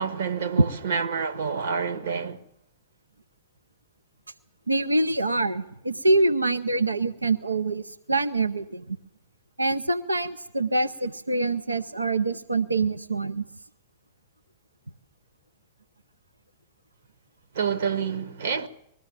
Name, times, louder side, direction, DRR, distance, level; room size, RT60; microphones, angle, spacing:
voice 1, 0.0-2.4 17.5-18.7, right 6 dB, 65° right, 1.6 m, -28 dB
voice 2, 4.7-9.0 9.6-13.4, right 2 dB, 90° right, 0.7 m, -25 dB
20.5 x 14.0 x 8.9 m
figure-of-eight pair, 105°, 0 cm